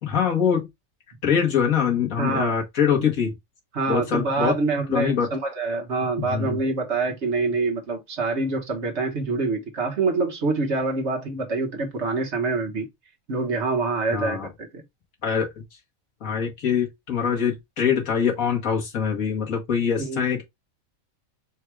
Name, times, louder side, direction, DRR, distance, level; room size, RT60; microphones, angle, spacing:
voice 1, 0.0-0.7 1.2-3.3 3.9-4.5 4.9-5.3 6.2-6.6 14.1-14.5 15.2-15.5 16.2-20.4, left 7 dB, 90° left, 1.9 m, -23 dB
voice 2, 2.2-2.6 3.7-12.9 13.3-14.8 20.0-20.2, right 3 dB, 55° right, 1.5 m, -26 dB
4.5 x 2.4 x 4.6 m
omnidirectional pair, 1.4 m